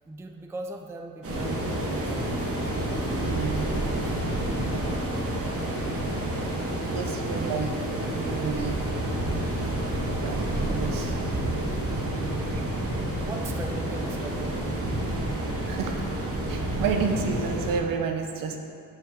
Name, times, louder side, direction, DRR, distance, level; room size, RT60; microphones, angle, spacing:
voice 1, 0.1-2.5 6.8-7.5 11.4-11.5 12.1-12.4 13.2-14.8, right 2 dB, 10° right, 3 dB, 0.4 m, -40 dB
sound 1, 1.2-17.7, right 1 dB, 40° right, 1.8 m, -29 dB
voice 2, 3.1-3.7 6.9-7.7 8.1-8.9 10.0-11.1 12.5-12.7 15.7-16.0 16.5-18.6, right 5 dB, 75° right, 4 dB, 1.0 m, -30 dB
12.0 x 5.7 x 3.7 m, 2.3 s
cardioid pair, 150°, 34 cm